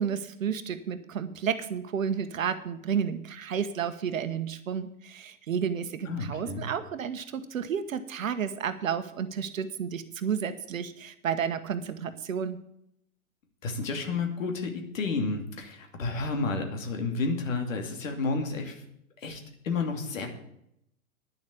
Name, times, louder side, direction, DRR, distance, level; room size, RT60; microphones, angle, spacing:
voice 1, 0.0-12.6, right 7 dB, 65° right, 11 dB, 1.1 m, -31 dB
voice 2, 6.0-6.6 13.6-18.8 19.2-20.3, left 3 dB, 60° left, 4 dB, 2.7 m, -31 dB
10.5 x 7.4 x 8.4 m, 0.75 s
figure-of-eight pair, 105°, 43 cm